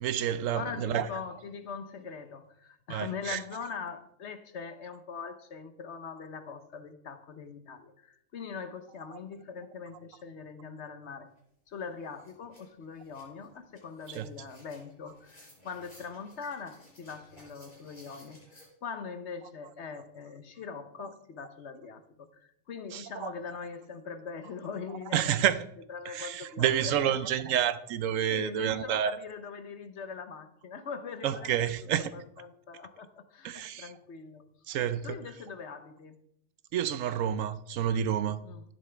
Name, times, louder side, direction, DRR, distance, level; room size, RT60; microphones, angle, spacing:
voice 1, 0.0-1.1 2.9-3.4 14.1-14.3 22.9-23.3 25.1-25.6 26.1-29.2 31.2-32.1 33.4-33.9 34.7-35.1 36.7-38.4, right 9 dB, 75° right, 1.0 m, -29 dB
voice 2, 0.5-11.3 11.7-25.3 25.9-27.1 28.2-31.5 32.1-34.5 35.0-36.2 38.4-38.6, left 5 dB, 60° left, 1.1 m, -42 dB
sound 1, 11.4-11.5 11.8-18.7, left 1 dB, 30° left, 5.4 m, -58 dB
12.0 x 10.5 x 3.4 m
omnidirectional pair, 1.4 m